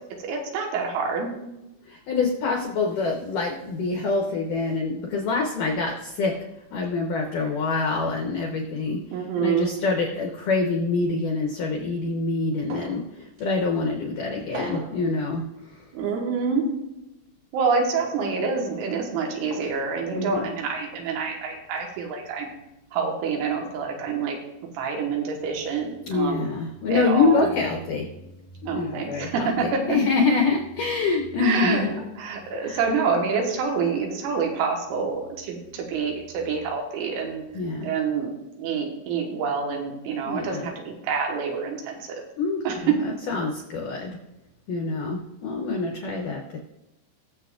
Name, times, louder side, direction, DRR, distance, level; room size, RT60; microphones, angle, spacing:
voice 1, 0.3-1.3 9.1-9.7 15.9-16.7 17.5-22.5 22.9-24.4 24.8-26.4 26.9-27.5 28.6-29.9 31.4-31.8 32.2-37.4 37.8-38.3 38.6-41.9 42.7-43.0, right 5 dB, 90° right, 1 dB, 3.8 m, -27 dB
voice 2, 1.9-6.3 6.7-9.0 9.4-13.0 13.4-15.4 20.1-20.5 26.0-28.1 28.6-31.9 32.6-32.8 37.5-37.9 40.2-40.7 42.4-42.6 43.3-44.1 44.7-46.6, left 4 dB, 75° left, 1 dB, 1.9 m, -25 dB
sound 1, 12.7-13.0 13.4-13.5 14.5-15.0 16.1-16.3 18.0-18.4 19.5-19.7 20.9-21.1, right 2 dB, 65° right, 3.6 m, -37 dB
21.5 x 7.2 x 2.5 m, 0.91 s
omnidirectional pair, 5.4 m